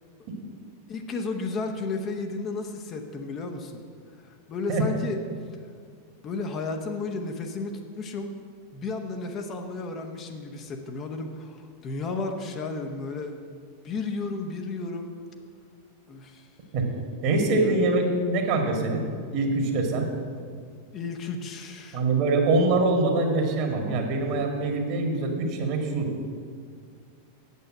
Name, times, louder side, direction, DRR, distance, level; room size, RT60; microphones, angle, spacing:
voice 1, 0.9-3.8 4.2-5.2 6.2-8.4 8.7-15.1 16.1-16.5 17.6-17.9 20.9-22.0, left 3 dB, 30° left, 4 dB, 0.9 m, -33 dB
voice 2, 17.2-19.0 19.3-20.1 21.9-26.1, right 2 dB, 45° right, 2 dB, 1.8 m, -24 dB
8.3 x 7.7 x 7.4 m, 2.1 s
figure-of-eight pair, 90°, 0 cm